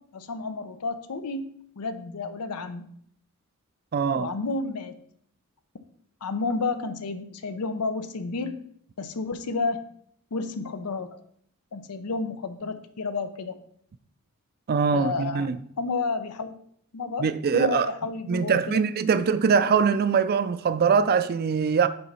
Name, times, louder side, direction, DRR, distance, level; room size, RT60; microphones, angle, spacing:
voice 1, 0.1-1.5 1.8-2.9 4.1-5.0 6.2-8.6 9.0-9.9 10.3-11.2 11.7-13.6 14.9-15.5 15.8-16.5 16.9-17.3 17.5-18.8 19.1-19.2, left 4 dB, 90° left, 0.6 m, -31 dB
voice 2, 3.9-4.3 14.7-15.6 17.2-17.9 18.3-21.9, right 6 dB, 45° right, 0.4 m, -22 dB
5.6 x 3.9 x 5.5 m
head